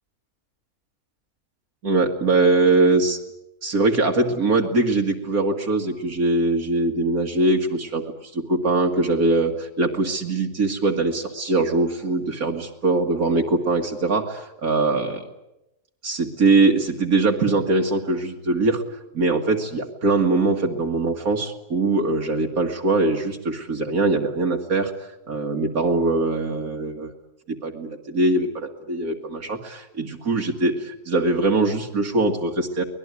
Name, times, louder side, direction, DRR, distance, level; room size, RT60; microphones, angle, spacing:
voice 1, 1.8-3.2 3.6-15.2 16.0-18.8 19.1-24.9 25.3-27.1 27.5-32.8, right 3 dB, 65° right, 2 dB, 2.3 m, -22 dB
24.0 x 20.0 x 9.6 m, 0.90 s
omnidirectional pair, 1.6 m